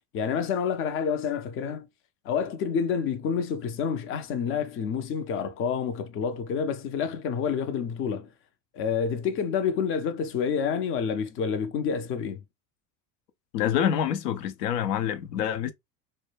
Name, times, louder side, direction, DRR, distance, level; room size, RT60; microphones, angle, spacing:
voice 1, 0.1-1.9 2.2-8.3 8.7-12.4, left 6 dB, 30° left, 0.4 m, -28 dB
voice 2, 13.5-15.7, left 9 dB, 75° left, 0.6 m, -26 dB
2.1 x 2.1 x 3.1 m
hypercardioid pair, 85°, 49 cm